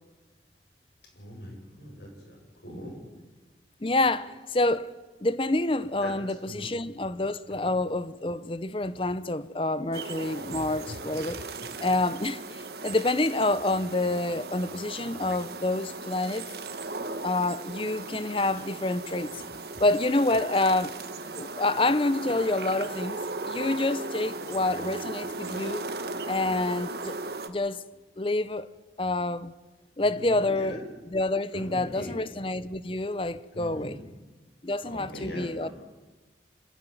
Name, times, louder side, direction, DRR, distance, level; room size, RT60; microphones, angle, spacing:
voice 1, 1.2-2.4 2.6-3.0 6.0-6.1 6.4-6.8 7.5-7.7 30.0-30.8 31.5-32.1 33.5-33.9 34.8-35.7, left 1 dB, 75° left, 7.7 m, -40 dB
voice 2, 3.8-4.9 5.2-11.4 11.8-16.5 17.2-19.4 19.8-21.0 21.3-25.8 26.3-27.2 27.5-27.8 28.2-28.7 29.0-29.5 30.0-30.8 31.1-34.0 34.6-35.7, left 2 dB, 30° left, 0.7 m, -27 dB
sound 1, 9.9-27.5, right 3 dB, 65° right, 1.5 m, -37 dB
26.0 x 15.0 x 9.4 m
head